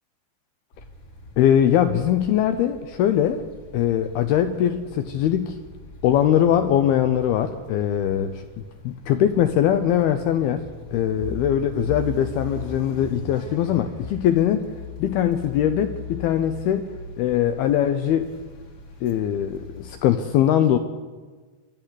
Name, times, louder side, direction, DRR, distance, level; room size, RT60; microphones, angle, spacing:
sound 1, 0.7-20.1, left 2 dB, 35° left, 2.1 m, -40 dB
voice 1, 1.4-3.4 3.7-5.6 6.0-8.4 8.8-10.6 10.9-14.7 15.0-16.9 17.2-18.3 19.0-20.8, left 10 dB, 80° left, 9 dB, 2.3 m, -21 dB
23.5 x 11.0 x 9.9 m, 1.4 s
omnidirectional pair, 5.2 m